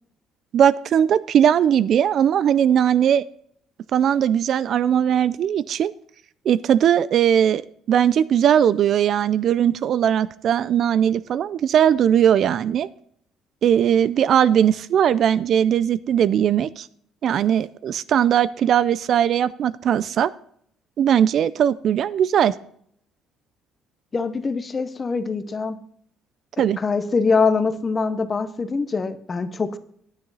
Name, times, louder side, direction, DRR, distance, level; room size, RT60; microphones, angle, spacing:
voice 1, 0.5-3.2 3.9-5.9 6.5-7.6 7.9-12.9 13.6-16.9 17.2-20.3 21.0-22.6 26.6-26.8, right 9 dB, 45° right, 18 dB, 0.4 m, -19 dB
voice 2, 24.1-25.8 26.6-29.8, left 4 dB, 25° left, 12 dB, 0.8 m, -23 dB
10.5 x 9.7 x 4.0 m, 0.65 s
cardioid pair, 150°, 0 cm